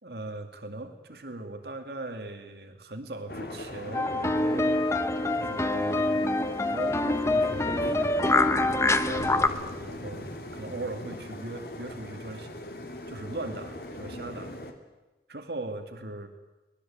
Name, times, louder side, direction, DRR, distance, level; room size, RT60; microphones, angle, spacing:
voice 1, 0.0-4.9 5.3-6.3 6.7-12.5 13.1-14.6 15.3-16.3, right 2 dB, 70° right, 6 dB, 2.3 m, -39 dB
sound 1, 3.3-14.7, left 1 dB, 60° left, 2.6 m, -40 dB
sound 2, 3.9-9.5, left 2 dB, 15° left, 1.0 m, -25 dB
24.5 x 19.5 x 8.7 m, 1.1 s
head